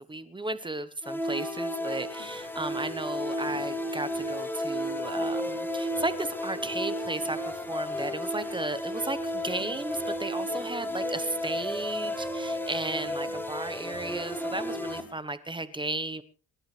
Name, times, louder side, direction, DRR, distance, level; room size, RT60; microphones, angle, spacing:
voice 1, 0.0-16.2, right 2 dB, 15° right, 13 dB, 1.1 m, -35 dB
sound 1, 1.0-15.0, equal, 5° left, 1.3 m, -33 dB
sound 2, 2.0-15.1, left 5 dB, 50° left, 6.7 m, -51 dB
29.0 x 11.5 x 3.3 m, 0.35 s
cardioid pair, 130°, 37 cm